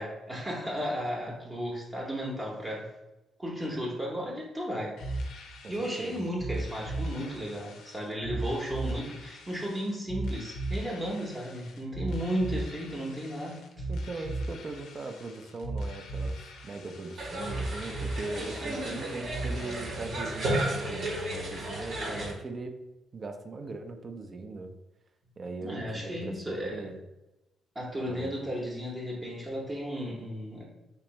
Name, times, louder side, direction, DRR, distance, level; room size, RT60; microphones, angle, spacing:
voice 1, 0.0-2.9 3.4-5.3 5.7-13.9 14.1-14.2 18.6-19.2 22.1-22.3 25.6-26.9 27.7-30.6, equal, 25° right, -3 dB, 0.8 m, -34 dB
sound 1, 5.0-19.7, right 2 dB, 80° left, 0.5 m, -37 dB
voice 2, 5.6-6.2 13.9-22.7 23.1-24.7 25.4-27.0 28.1-28.3, right 3 dB, 40° right, 6 dB, 0.4 m, -40 dB
sound 2, 17.2-22.3, right 1 dB, 75° right, 1.0 m, -33 dB
3.4 x 3.0 x 3.0 m, 0.96 s
cardioid pair, 90°, 0 cm